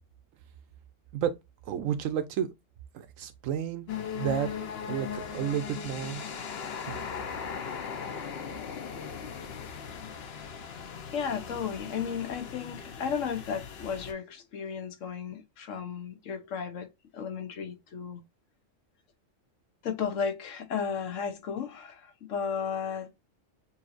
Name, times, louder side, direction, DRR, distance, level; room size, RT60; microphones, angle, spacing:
voice 1, 1.6-2.5 2.9-3.9 4.1-4.5 4.9-6.2 6.8-7.0, right 9 dB, 80° right, 1.1 m, -31 dB
sound 1, 3.9-14.1, left 7 dB, 55° left, 0.9 m, -38 dB
voice 2, 11.1-18.2 19.8-23.2, left 6 dB, 75° left, 1.2 m, -34 dB
7.0 x 2.7 x 2.5 m
omnidirectional pair, 1.4 m